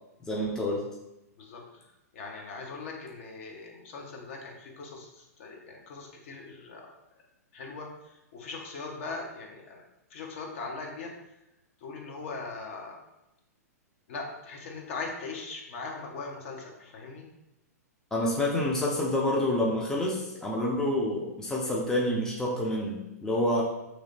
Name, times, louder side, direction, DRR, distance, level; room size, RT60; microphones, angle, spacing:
voice 1, 0.3-0.8 18.1-23.6, left 1 dB, 5° left, -3 dB, 0.5 m, -28 dB
voice 2, 1.4-1.8 2.1-6.9 7.5-9.8 10.1-11.1 11.8-13.0 14.1-17.3, left 4 dB, 50° left, 1 dB, 0.8 m, -40 dB
3.2 x 2.8 x 3.8 m, 0.91 s
figure-of-eight pair, 110°, 9 cm